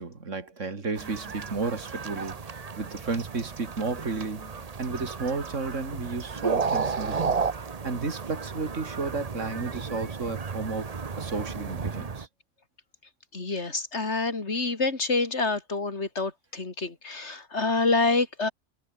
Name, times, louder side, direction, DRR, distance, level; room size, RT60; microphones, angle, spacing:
voice 1, 0.0-7.4 7.8-12.3, right 4 dB, 85° right, 2.9 m, -33 dB
sound 1, 1.0-12.2, right 5 dB, 35° right, 1.0 m, -33 dB
voice 2, 13.3-18.5, left 3 dB, 65° left, 3.4 m, -27 dB
omnidirectional pair, 1.2 m